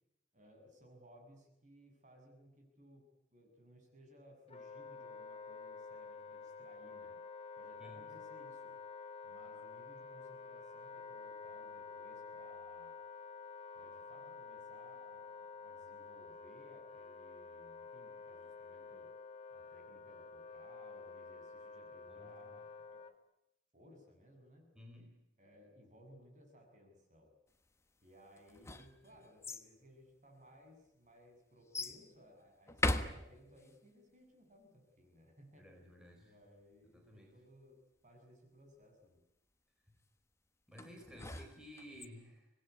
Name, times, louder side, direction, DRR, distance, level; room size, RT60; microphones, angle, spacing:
voice 1, 0.3-7.2 7.6-8.8 9.2-13.0 13.7-19.1 19.5-23.2 23.7-24.7 25.4-27.3 28.0-35.8 36.2-39.2, equal, 45° right, 3 dB, 7.6 m, -61 dB
Wind instrument woodwind instrument, 4.5-23.1, left 5 dB, 35° left, 1.5 m, -50 dB
voice 2, 22.1-22.5 24.7-25.1 35.6-36.3 36.9-37.3 40.7-42.5, equal, 5° right, 1 dB, 4.7 m, -55 dB
sound 1, 28.4-29.7 30.5-30.6 31.7-32.0 32.7-33.7 40.8-42.1, left 2 dB, 15° left, 1.5 m, -39 dB
26.0 x 20.0 x 9.6 m, 0.83 s
head